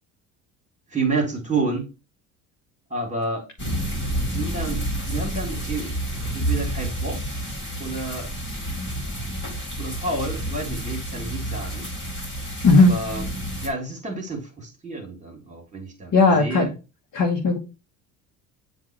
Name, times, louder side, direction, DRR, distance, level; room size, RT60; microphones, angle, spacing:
voice 1, 0.9-1.9 2.9-3.5 4.3-7.2 7.8-8.3 9.8-11.9 12.7-13.3 13.6-16.7, right 3 dB, 15° right, 1 dB, 2.7 m, -30 dB
sound 1, 3.6-13.7, right 1 dB, 25° left, 2.7 m, -29 dB
voice 2, 16.1-16.7 17.1-17.6, left 3 dB, 40° left, 1 dB, 1.4 m, -16 dB
7.4 x 2.8 x 4.5 m, 0.29 s
hypercardioid pair, 65°, 47 cm